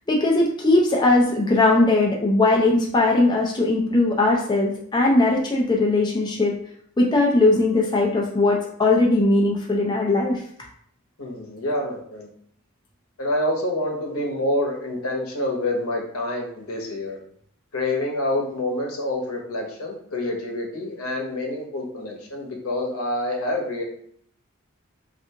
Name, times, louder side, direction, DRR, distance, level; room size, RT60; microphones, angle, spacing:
voice 1, 0.1-6.6 7.0-10.4, left 2 dB, 20° left, -2 dB, 0.4 m, -19 dB
voice 2, 11.2-12.3 13.2-17.2 17.7-23.8, left 1 dB, 80° left, 1 dB, 0.8 m, -27 dB
3.3 x 2.5 x 2.8 m, 0.64 s
head